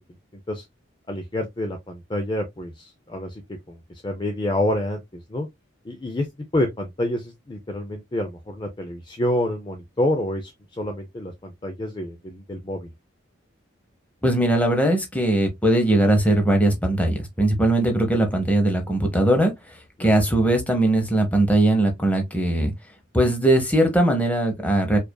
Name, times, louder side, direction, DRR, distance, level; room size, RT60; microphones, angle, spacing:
voice 1, 1.1-3.4 3.7-3.8 4.0-5.5 5.8-6.3 6.5-12.9 20.0-20.1, left 1 dB, 25° left, 0.5 m, -28 dB
voice 2, 14.2-22.7 23.1-25.0, right 1 dB, 5° left, 0.9 m, -20 dB
4.9 x 2.5 x 2.2 m
head